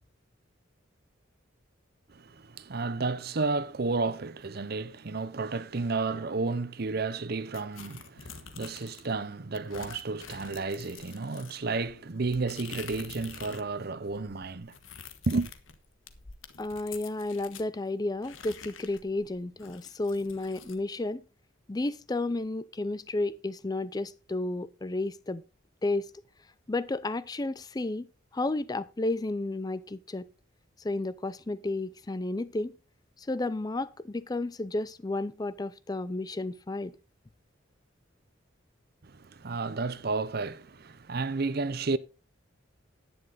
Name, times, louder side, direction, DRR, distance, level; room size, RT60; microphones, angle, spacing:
voice 1, 2.1-14.7 15.3-15.5 39.0-42.0, right 3 dB, 50° right, 0.7 m, -32 dB
sound 1, 7.5-9.1 9.5-13.7 14.0-17.7 18.2-20.8, left 7 dB, 80° left, 1.4 m, -47 dB
voice 2, 16.6-21.2 21.7-25.4 25.8-26.1 26.7-28.1 28.3-30.3 30.8-32.7 33.2-36.9, left 2 dB, 20° left, 0.4 m, -32 dB
11.0 x 9.8 x 4.0 m
head